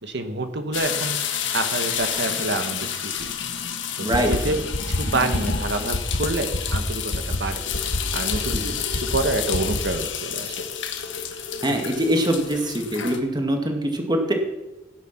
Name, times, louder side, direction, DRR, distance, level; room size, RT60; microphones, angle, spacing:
voice 1, 0.0-3.3 4.0-4.6 4.9-7.6 8.1-10.7, right 2 dB, 60° right, 7 dB, 1.3 m, -28 dB
sound 1, 0.7-13.2, left 8 dB, 65° left, 1.6 m, -30 dB
voice 2, 4.0-4.6 8.5-8.8 11.6-14.3, equal, 20° right, 3 dB, 2.0 m, -23 dB
sound 2, 4.1-4.4 4.7-5.0 5.3-5.6 5.9-6.2 6.5-6.8 7.1-7.4 7.7-8.0 8.3-8.6 8.9-9.2 9.5-9.8, left 1 dB, 90° left, 1.5 m, -25 dB
16.0 x 10.0 x 6.0 m, 1.0 s
head